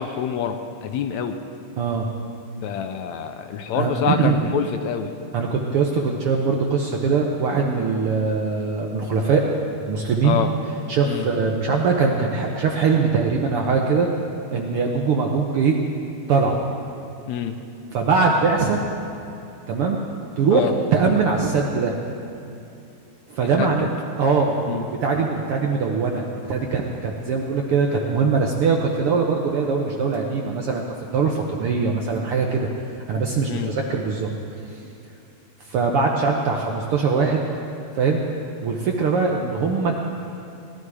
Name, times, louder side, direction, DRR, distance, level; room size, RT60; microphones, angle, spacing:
voice 1, 0.0-1.4 2.6-5.1 10.2-10.5 11.0-11.3 17.3-17.6 20.5-20.7 23.6-23.7 24.7-24.8 33.5-33.7, left 8 dB, 75° left, 7 dB, 1.8 m, -26 dB
voice 2, 1.8-2.1 3.7-4.4 5.3-9.4 9.9-10.4 10.9-14.1 14.5-15.8 16.3-16.6 17.9-18.8 19.7-20.0 20.4-21.9 23.3-23.9 24.2-30.8 31.1-32.7 33.1-34.3 34.7-34.8 35.7-37.4 37.9-38.2 38.6-40.0, right 5 dB, 65° right, 0 dB, 1.4 m, -21 dB
19.0 x 11.5 x 4.8 m, 2.7 s
omnidirectional pair, 3.5 m